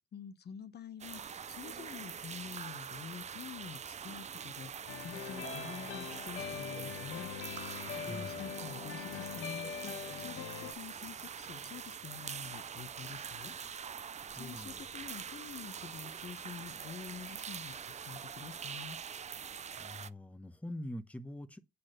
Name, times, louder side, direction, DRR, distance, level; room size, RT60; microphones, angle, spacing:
voice 1, 0.1-7.3 8.0-13.5 14.3-17.8 18.1-19.0, left 7 dB, 55° left, 1.0 m, -48 dB
sound 1, 1.0-20.1, right 7 dB, 35° right, 0.5 m, -44 dB
sound 2, 4.9-10.7, left 7 dB, 90° left, 1.4 m, -42 dB
voice 2, 8.1-8.5 14.4-14.8 19.8-21.6, left 1 dB, 5° left, 1.1 m, -44 dB
8.3 x 4.3 x 6.6 m
cardioid pair, 90°, 20 cm